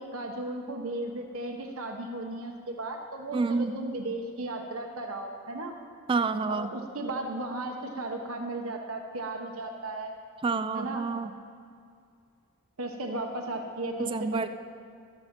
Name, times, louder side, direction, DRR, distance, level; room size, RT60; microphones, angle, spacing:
voice 1, 0.0-5.7 6.5-10.1 10.7-11.0 12.8-14.5, right 2 dB, 75° right, 3 dB, 0.9 m, -35 dB
voice 2, 3.3-3.7 6.1-6.7 10.4-11.3 14.0-14.5, right 4 dB, 25° right, 10 dB, 0.3 m, -28 dB
12.0 x 9.7 x 5.8 m, 2.4 s
head